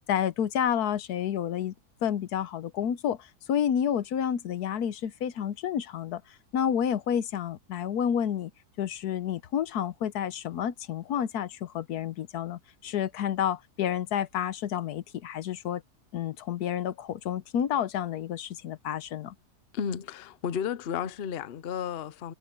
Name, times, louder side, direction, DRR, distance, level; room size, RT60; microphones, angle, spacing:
voice 1, 0.1-1.7 2.0-6.2 6.5-8.5 8.8-15.8 16.1-19.3, left 9 dB, 85° left, 1.3 m, -30 dB
voice 2, 19.7-22.3, left 8 dB, 50° left, 0.8 m, -33 dB
omnidirectional pair, 1.6 m